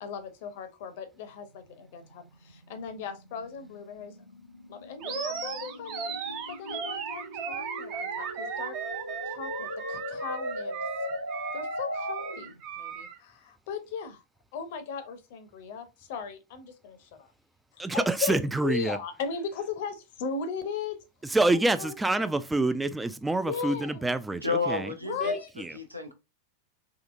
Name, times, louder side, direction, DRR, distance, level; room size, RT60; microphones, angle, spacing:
voice 1, 0.0-4.2 4.7-6.1 6.5-8.7 9.3-10.8 11.5-12.5 12.8-14.2 14.5-17.3 17.9-21.0 21.3-22.3 23.5-24.1 25.0-25.5, left 6 dB, 50° left, 0.7 m, -37 dB
sound 1, 1.3-12.6, equal, 90° left, 0.4 m, -39 dB
Animal, 5.0-13.2, right 7 dB, 40° right, 0.7 m, -36 dB
voice 2, 17.8-19.0 21.3-24.9 25.2-25.7, right 2 dB, 10° right, 0.3 m, -27 dB
voice 3, 24.4-25.3 25.7-26.1, left 4 dB, 90° right, 0.7 m, -30 dB
3.8 x 2.8 x 2.5 m
figure-of-eight pair, 90°, 0 cm